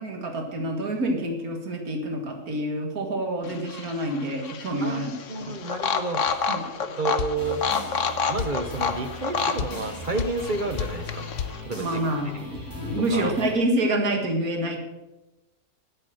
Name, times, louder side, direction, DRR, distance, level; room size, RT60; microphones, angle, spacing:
voice 1, 0.0-5.1 5.4-5.6 6.5-6.7 11.8-14.8, right 1 dB, 85° right, 3 dB, 2.3 m, -27 dB
sound 1, 3.4-11.6, left 5 dB, 60° left, 1.3 m, -30 dB
voice 2, 5.3-6.2 7.0-7.6 8.3-11.3 11.6-12.0 13.1-13.3, right 3 dB, 40° right, 8 dB, 0.8 m, -30 dB
sound 2, 7.2-7.4 8.4-8.6 9.6-9.8 10.2-10.4 10.8-11.0 11.4-11.6, left 9 dB, 85° left, 1.1 m, -29 dB
sound 3, 7.4-13.5, left 2 dB, 15° left, 3.1 m, -38 dB
12.5 x 8.8 x 6.3 m, 1.0 s
omnidirectional pair, 1.5 m